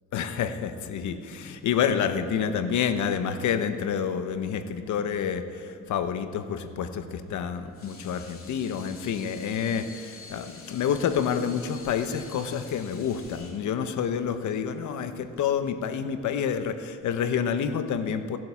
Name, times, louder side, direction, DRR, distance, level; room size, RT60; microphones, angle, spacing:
voice 1, 0.1-18.4, left 7 dB, 75° left, 10 dB, 1.0 m, -28 dB
Water tap faucet / Sink (filling or washing), 7.5-15.6, left 4 dB, 45° left, 2.6 m, -48 dB
16.0 x 7.7 x 8.3 m, 2.5 s
cardioid pair, 90°, 30 cm